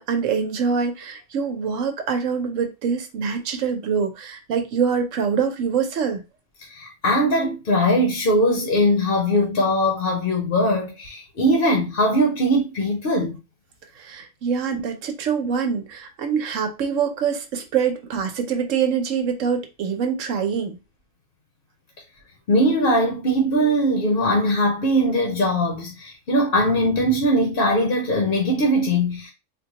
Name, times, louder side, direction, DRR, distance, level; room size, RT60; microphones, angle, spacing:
voice 1, 0.0-6.2 14.0-20.8, right 6 dB, 90° right, 1.1 m, -24 dB
voice 2, 6.7-13.4 22.5-29.3, equal, 50° left, 0.9 m, -20 dB
3.9 x 2.2 x 2.8 m
omnidirectional pair, 1.3 m